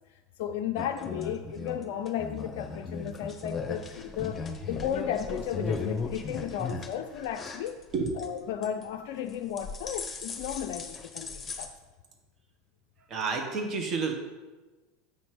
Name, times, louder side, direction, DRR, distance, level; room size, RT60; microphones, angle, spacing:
voice 1, 0.4-7.8 8.2-11.7, left 9 dB, 60° left, 0.4 m, -34 dB
sound 1, 0.8-8.3 8.6-9.0 9.3-11.7, left 4 dB, 20° left, 1.0 m, -37 dB
voice 2, 7.9-8.2 13.1-14.1, right 4 dB, 40° right, 1.4 m, -30 dB
7.2 x 5.8 x 4.9 m
figure-of-eight pair, 75°, 0 cm